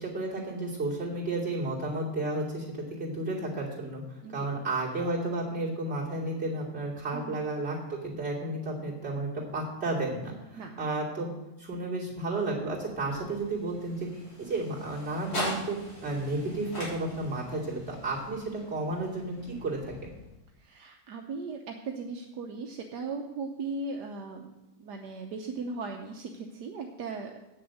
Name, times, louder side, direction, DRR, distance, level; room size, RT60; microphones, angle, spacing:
voice 1, 0.0-11.3 11.6-20.1, right 2 dB, 35° right, -6 dB, 3.1 m, -32 dB
sound 1, 12.4-20.6, left 1 dB, 65° left, 4.1 m, -42 dB
voice 2, 20.6-24.5 24.8-27.4, right 4 dB, 75° right, 2 dB, 1.4 m, -38 dB
8.7 x 6.8 x 7.7 m, 0.97 s
omnidirectional pair, 1.8 m